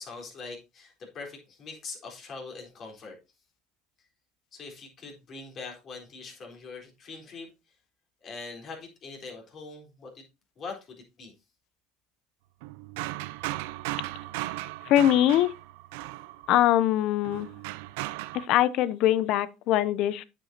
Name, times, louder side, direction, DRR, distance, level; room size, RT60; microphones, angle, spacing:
voice 1, 0.0-3.2 4.5-7.5 8.2-10.2 10.6-11.3, left 4 dB, 45° left, 4.0 m, -42 dB
sound 1, 12.6-16.7 17.2-18.5, right 18 dB, 75° right, 0.4 m, -36 dB
voice 2, 14.8-15.5 16.5-17.5 18.3-20.2, left 12 dB, 60° left, 0.6 m, -22 dB
9.0 x 8.4 x 2.8 m
hypercardioid pair, 80°, 0 cm